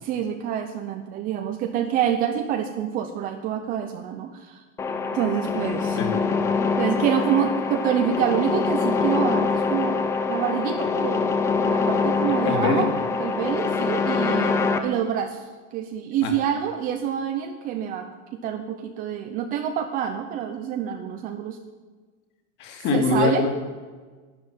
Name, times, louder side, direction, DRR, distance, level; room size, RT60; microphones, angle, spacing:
voice 1, 0.0-4.6 5.1-6.0 6.8-10.0 10.3-11.3 11.6-12.9 13.2-18.1 18.4-21.6 22.9-23.4, right 9 dB, 25° right, 6 dB, 0.8 m, -27 dB
sound 1, 4.8-14.8, left 4 dB, 10° left, 0.5 m, -24 dB
voice 2, 12.2-12.9 16.2-16.3 22.6-23.5, left 5 dB, 30° left, 4 dB, 2.5 m, -24 dB
12.0 x 12.0 x 9.8 m, 1.4 s
supercardioid pair, 170°, 36 cm